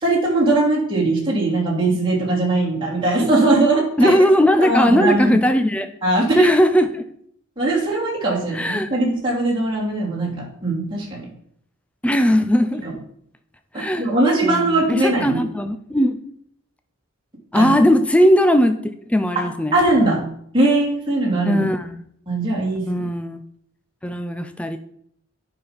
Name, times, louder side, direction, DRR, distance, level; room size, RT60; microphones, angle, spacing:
voice 1, 0.0-4.1 4.6-5.4 6.0-6.6 7.6-11.3 12.8-12.9 13.7-15.4 17.5-17.7 19.3-20.2 20.5-21.6 22.3-23.0, right 2 dB, 25° right, -5 dB, 2.8 m, -20 dB
voice 2, 4.0-5.9 6.4-7.0 8.5-8.9 12.0-12.8 13.7-14.0 14.4-16.2 17.5-18.8 19.1-19.7 21.5-22.0 22.9-23.4 24.0-24.8, equal, 5° left, 8 dB, 0.5 m, -18 dB
9.6 x 5.6 x 5.1 m, 0.67 s
head